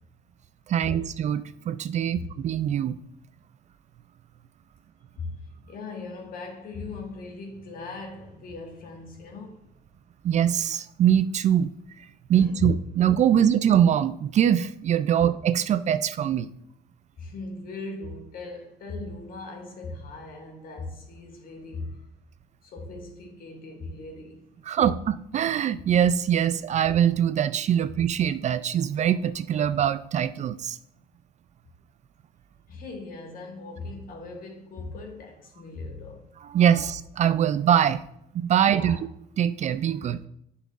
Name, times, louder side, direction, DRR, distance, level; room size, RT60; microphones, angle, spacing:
voice 1, 0.7-3.0 10.2-11.7 12.3-16.5 24.7-30.8 36.5-38.0 38.3-39.0 39.4-40.2, right 9 dB, 45° right, 0.4 m, -23 dB
voice 2, 5.7-9.7 12.3-12.7 13.3-13.5 17.2-22.1 22.6-24.5 32.7-36.3 38.8-39.0, left 3 dB, 60° left, 1.7 m, -38 dB
10.5 x 5.8 x 2.5 m
cardioid pair, 110°, 17 cm